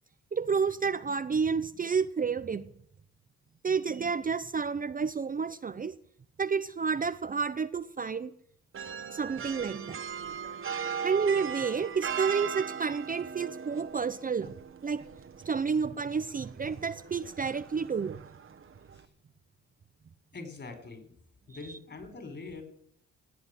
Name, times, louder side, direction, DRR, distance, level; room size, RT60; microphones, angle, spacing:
voice 1, 0.3-2.7 3.6-5.9 6.4-8.3 9.1-10.0 11.0-14.6 14.8-15.1 15.4-18.2, right 5 dB, 30° right, 11 dB, 0.7 m, -30 dB
sound 1, 8.7-19.1, right 7 dB, 45° right, 1.4 m, -39 dB
voice 2, 20.3-21.1 21.5-22.6, left 3 dB, 35° left, 7 dB, 4.9 m, -43 dB
17.5 x 8.1 x 9.1 m, 0.68 s
cardioid pair, 90°, 30 cm